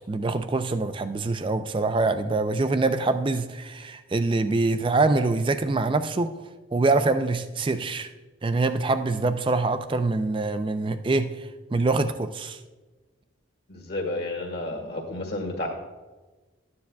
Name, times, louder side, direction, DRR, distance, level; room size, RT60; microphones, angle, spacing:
voice 1, 0.1-6.3 6.7-8.1 8.4-11.3 11.7-12.6, right 3 dB, 25° right, 10 dB, 0.4 m, -24 dB
voice 2, 13.7-15.7, left 2 dB, 55° left, 2 dB, 1.7 m, -31 dB
13.0 x 9.6 x 2.3 m, 1.2 s
head